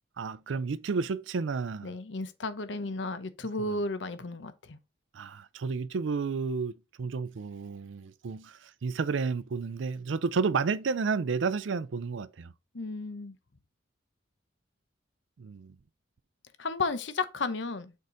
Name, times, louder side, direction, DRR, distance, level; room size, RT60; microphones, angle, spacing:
voice 1, 0.2-1.9 3.7-3.8 5.1-12.5 15.4-15.7, right 5 dB, 75° right, 0.5 m, -31 dB
voice 2, 1.8-4.8 12.7-13.4 16.6-17.9, left 3 dB, 65° left, 0.8 m, -33 dB
6.5 x 4.8 x 3.8 m
head